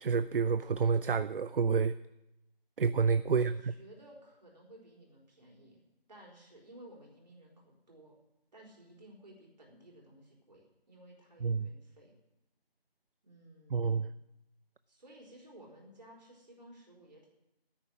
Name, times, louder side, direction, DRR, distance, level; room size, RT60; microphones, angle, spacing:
voice 1, 0.0-1.9 2.8-3.5 11.4-11.7 13.7-14.1, right 5 dB, 65° right, 15 dB, 0.5 m, -28 dB
voice 2, 3.2-5.8 6.1-8.1 8.5-12.1 13.2-14.2 14.9-17.3, right 1 dB, 45° right, -1 dB, 3.9 m, -56 dB
10.0 x 8.8 x 9.9 m, 0.92 s
figure-of-eight pair, 170°, 30 cm